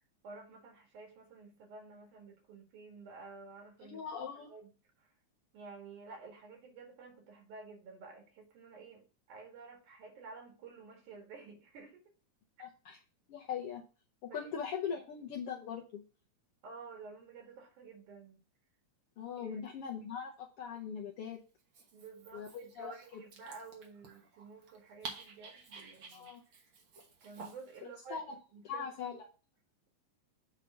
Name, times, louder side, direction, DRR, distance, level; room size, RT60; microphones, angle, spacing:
voice 1, 0.2-4.0 4.4-4.7 5.0-5.1 5.5-12.0 12.6-12.7 14.3-14.5 16.6-18.4 19.4-19.6 21.9-26.7 27.2-28.2 28.5-28.9, right 4 dB, 85° right, 1 dB, 3.3 m, -51 dB
voice 2, 3.8-4.5 12.6-13.0 13.3-13.8 14.2-16.0 19.2-21.4 22.3-23.2 26.1-26.4 27.8-28.4 28.6-29.3, left 7 dB, 75° left, -1 dB, 1.3 m, -41 dB
Dog, 21.6-27.8, right 4 dB, 55° right, 1.6 m, -51 dB
8.1 x 3.1 x 5.8 m, 0.35 s
omnidirectional pair, 3.4 m